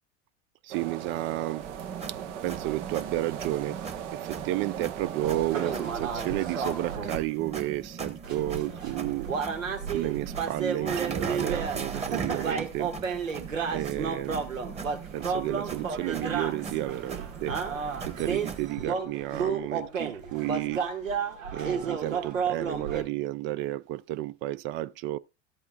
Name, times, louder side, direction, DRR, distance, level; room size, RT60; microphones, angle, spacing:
voice 1, 0.6-1.7 2.1-3.8 4.1-9.3 9.9-12.9 13.7-14.5 15.1-17.6 18.0-20.9 21.5-25.2, right 15 dB, 35° right, 0.4 m, -32 dB
sound 1, 0.7-7.0, right 10 dB, 65° right, 1.0 m, -39 dB
sound 2, 1.6-18.7, right 5 dB, 15° right, 1.2 m, -40 dB
sound 3, 5.2-7.2 8.2-23.0, right 6 dB, 85° right, 1.7 m, -32 dB
13.5 x 8.5 x 2.3 m
hypercardioid pair, 90°, 38 cm